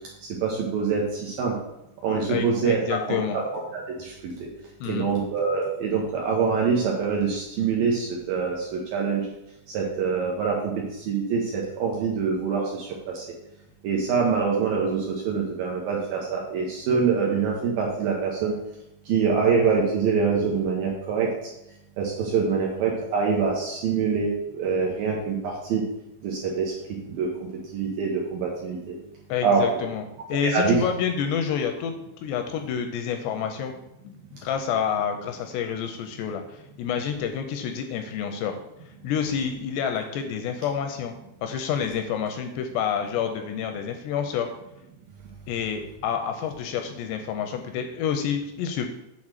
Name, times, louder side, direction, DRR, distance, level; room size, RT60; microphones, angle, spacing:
voice 1, 0.4-1.5 2.0-2.8 3.1-3.2 3.7-4.3 4.9-9.2 9.7-10.7 11.0-12.9 13.1-13.2 13.8-18.5 19.1-21.3 22.0-25.8 26.2-26.7 27.2-29.0 29.4-29.6 30.4-30.8, right 5 dB, 70° right, -2 dB, 2.3 m, -25 dB
voice 2, 2.3-3.4 4.8-5.1 29.3-30.0 30.3-32.0 32.2-33.8 34.0-34.1 34.4-38.5 39.0-41.1 41.4-44.5 45.5-48.9, left 7 dB, 85° left, 6 dB, 2.6 m, -28 dB
7.3 x 4.3 x 6.6 m, 0.86 s
omnidirectional pair, 5.3 m